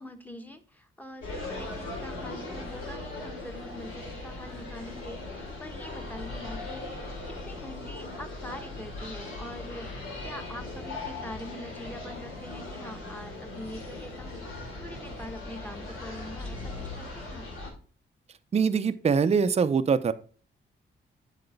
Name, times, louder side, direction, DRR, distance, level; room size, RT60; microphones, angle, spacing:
voice 1, 0.0-6.9 7.3-17.5, left 1 dB, 10° left, 6 dB, 0.9 m, -44 dB
sound 1, 1.2-17.7, left 2 dB, 85° left, 2.5 m, -39 dB
voice 2, 18.5-20.1, right 6 dB, 30° right, 11 dB, 0.5 m, -23 dB
7.8 x 4.9 x 3.3 m, 0.41 s
cardioid pair, 90°, 21 cm